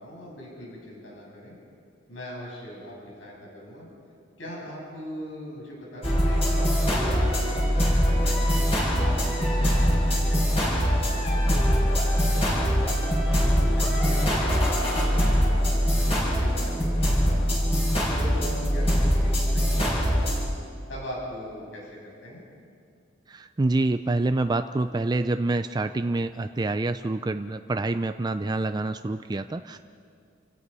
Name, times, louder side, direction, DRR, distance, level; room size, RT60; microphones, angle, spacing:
voice 1, 0.0-1.6 2.1-3.9 4.4-8.4 8.9-13.0 13.4-17.6 18.1-20.3 20.9-22.4, left 1 dB, 80° left, -3 dB, 7.1 m, -40 dB
sound 1, 6.0-20.5, equal, 30° left, 7.5 m, -23 dB
voice 2, 23.3-29.8, right 2 dB, 20° right, 9 dB, 0.4 m, -27 dB
29.0 x 16.5 x 5.5 m, 2.3 s
head